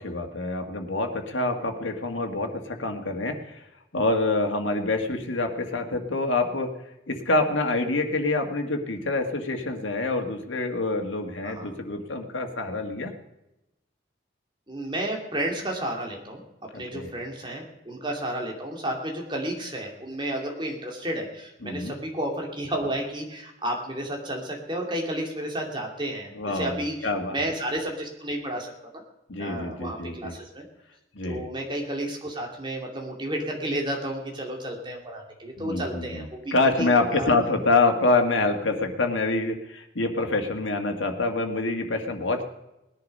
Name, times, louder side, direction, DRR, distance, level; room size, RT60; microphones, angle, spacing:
voice 1, 0.0-3.6 3.9-6.7 7.1-13.1 16.9-17.1 21.6-22.0 26.4-27.4 29.3-30.3 31.2-31.4 35.6-36.2 36.5-42.4, left 2 dB, 90° left, 4 dB, 1.9 m, -26 dB
voice 2, 14.7-16.4 16.7-29.0 29.4-30.6 31.2-37.3, right 1 dB, 25° right, 1 dB, 2.7 m, -32 dB
19.0 x 11.0 x 5.5 m, 0.92 s
head